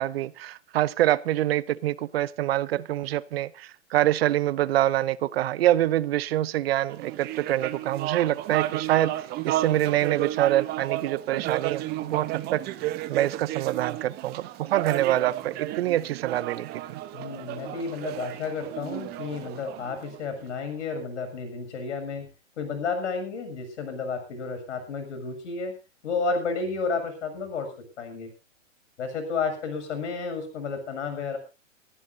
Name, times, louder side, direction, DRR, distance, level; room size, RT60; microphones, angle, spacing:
voice 1, 0.0-9.2 9.4-17.0, right 13 dB, 50° right, 0.8 m, -25 dB
sound 1, 6.9-20.6, right 15 dB, 25° right, 1.0 m, -33 dB
voice 2, 17.1-22.3 22.6-25.7 26.0-27.7 28.0-28.3 29.0-31.4, left 4 dB, 65° left, 7.3 m, -31 dB
23.5 x 14.5 x 2.7 m
hypercardioid pair, 130°, 38 cm